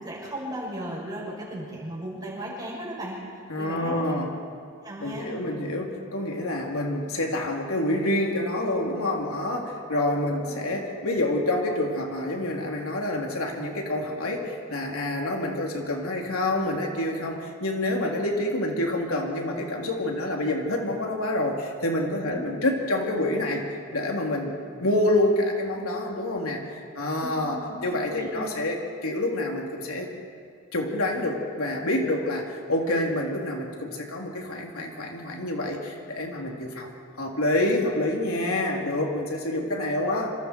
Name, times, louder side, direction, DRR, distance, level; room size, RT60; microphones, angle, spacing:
voice 1, 0.0-3.2 3.6-4.0 4.8-5.3 10.1-10.6 22.2-22.4 27.2-27.8 28.1-28.3, right 1 dB, 20° right, -5 dB, 7.4 m, -36 dB
voice 2, 3.5-4.3 5.0-23.6 23.9-30.1 30.7-36.9 37.2-40.4, left 1 dB, 80° left, 0 dB, 3.3 m, -27 dB
27.5 x 27.5 x 4.6 m, 2.2 s
head